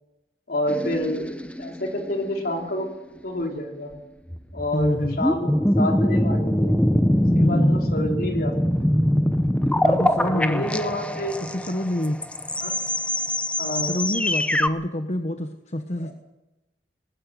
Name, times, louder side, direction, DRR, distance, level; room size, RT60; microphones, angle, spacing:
voice 1, 0.5-1.2 1.6-2.9 3.2-3.9 4.5-6.8 7.4-8.6 10.3-11.4 12.6-12.8 13.6-13.9 16.0-16.1, left 1 dB, 60° left, 2 dB, 4.0 m, -28 dB
sound 1, 0.7-2.9 4.3-14.7, equal, 10° left, 0.9 m, -23 dB
voice 2, 4.7-5.2 7.4-7.7 9.8-10.7 11.4-12.2 13.8-16.1, left 1 dB, 40° left, 6 dB, 1.3 m, -27 dB
20.0 x 15.5 x 9.7 m, 1.0 s
head